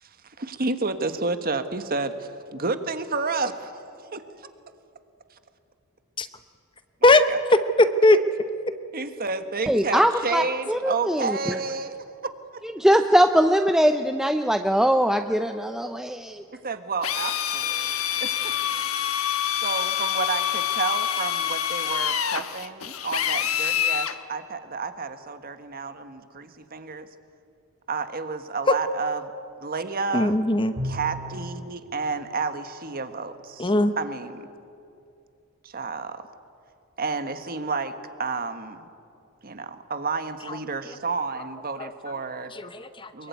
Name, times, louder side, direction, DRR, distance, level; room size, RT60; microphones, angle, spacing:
voice 1, 0.0-4.2 7.0-7.4 8.9-12.0 12.5-12.6 16.5-17.9 18.2-18.5 19.6-27.1 27.9-29.3 29.6-30.3 30.8-34.5 35.6-36.3 37.0-38.9 39.4-42.5 43.1-43.3, right 4 dB, 45° right, 9 dB, 1.4 m, -31 dB
voice 2, 7.5-8.2 30.1-30.7 33.6-33.9 42.6-43.1, left 2 dB, 25° left, 11 dB, 0.9 m, -18 dB
voice 3, 9.7-10.4 10.7-11.4 12.8-16.4, equal, ahead, 7 dB, 0.6 m, -21 dB
Drill, 17.0-24.2, left 10 dB, 75° left, 1.2 m, -26 dB
Bowed string instrument, 30.8-31.6, equal, 85° right, 5.5 m, -32 dB
24.0 x 22.5 x 9.4 m, 2.6 s
head